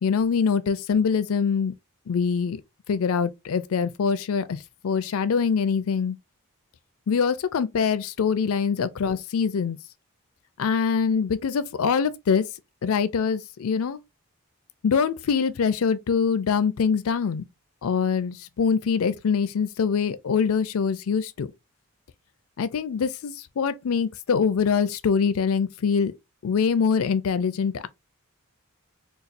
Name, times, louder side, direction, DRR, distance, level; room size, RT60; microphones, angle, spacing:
voice 1, 0.0-1.7 2.1-2.6 2.9-4.6 4.8-6.2 7.1-9.8 10.6-12.4 12.8-14.0 14.8-17.4 17.8-21.5 22.6-26.1 26.4-27.9, left 6 dB, 75° left, 0.4 m, -24 dB
4.0 x 2.3 x 2.5 m
head